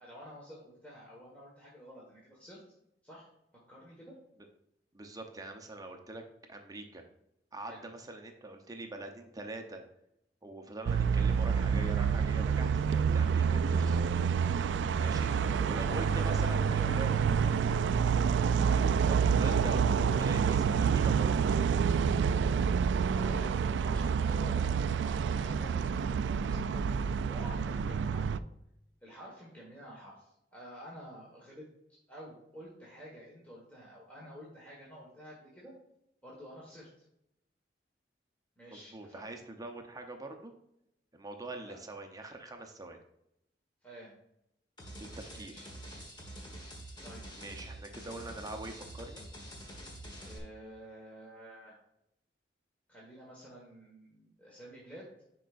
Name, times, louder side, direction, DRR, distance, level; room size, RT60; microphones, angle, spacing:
voice 1, 0.0-2.6 3.0-3.3 3.7-4.2 7.6-7.8 14.6-18.1 22.8-28.5 29.0-31.7 32.1-35.7 36.2-36.9 38.6-39.2 41.6-41.8 43.8-44.1 45.3-45.7 47.0-47.3 50.2-51.8 52.9-55.2, equal, 10° left, -5 dB, 1.5 m, -50 dB
voice 2, 4.9-6.2 6.5-7.0 7.5-9.8 10.4-14.1 15.0-15.3 15.6-17.1 18.9-21.4 38.7-40.5 41.1-43.0 45.0-45.5 47.3-49.2, right 2 dB, 20° right, 4 dB, 0.8 m, -44 dB
sound 1, 10.9-28.4, right 6 dB, 85° right, 0.3 m, -28 dB
sound 2, 44.8-50.4, right 1 dB, 25° left, 1.4 m, -46 dB
10.5 x 4.7 x 2.5 m, 0.81 s
head